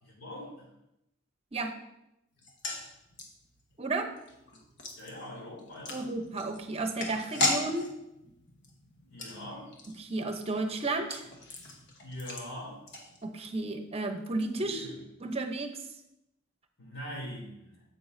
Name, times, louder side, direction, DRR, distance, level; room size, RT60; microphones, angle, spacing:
voice 1, 0.0-0.7 5.0-6.0 9.0-9.7 12.0-12.8 14.6-15.0 16.8-17.8, left 1 dB, 85° left, -3 dB, 3.1 m, -42 dB
sound 1, 2.4-13.6 13.9-14.0 14.2-14.4, left 2 dB, 60° left, 1.3 m, -38 dB
voice 2, 3.8-4.1 5.9-7.9 10.0-11.2 13.2-14.8 15.2-15.7, right 2 dB, 30° right, 6 dB, 0.8 m, -32 dB
9.2 x 7.6 x 2.7 m, 0.86 s
head